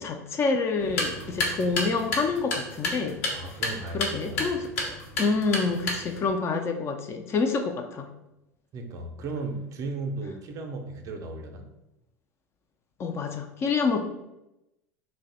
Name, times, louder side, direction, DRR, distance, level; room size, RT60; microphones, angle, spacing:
voice 1, 0.0-3.2 3.9-8.1 13.0-14.0, left 4 dB, 30° left, 5 dB, 0.4 m, -27 dB
sound 1, 0.8-6.3, left 2 dB, 65° left, 0.8 m, -32 dB
voice 2, 3.3-4.5 8.7-11.7, right 3 dB, 40° right, 5 dB, 0.5 m, -35 dB
2.5 x 2.1 x 3.9 m, 0.91 s
hypercardioid pair, 80°, 9 cm